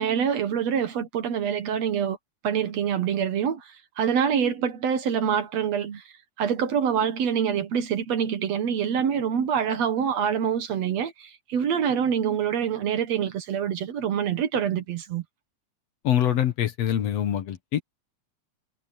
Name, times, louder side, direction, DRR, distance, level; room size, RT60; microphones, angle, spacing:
voice 1, 0.0-2.2 2.4-6.0 6.4-15.2, right 8 dB, 65° right, 2.4 m, -25 dB
voice 2, 16.0-17.8, left 10 dB, 60° left, 2.2 m, -24 dB
omnidirectional pair, 3.5 m